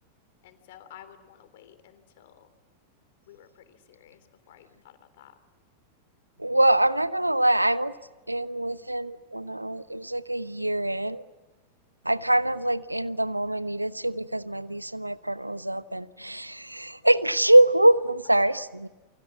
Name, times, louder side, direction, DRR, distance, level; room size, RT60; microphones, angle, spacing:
voice 1, 0.4-2.5 3.3-5.3 18.5-18.6, left 11 dB, 55° left, 10 dB, 3.4 m, -52 dB
voice 2, 6.4-7.9 8.3-11.2 12.0-18.9, right 1 dB, 85° right, 16 dB, 0.9 m, -24 dB
29.0 x 24.0 x 8.4 m, 1.2 s
figure-of-eight pair, 90°, 0 cm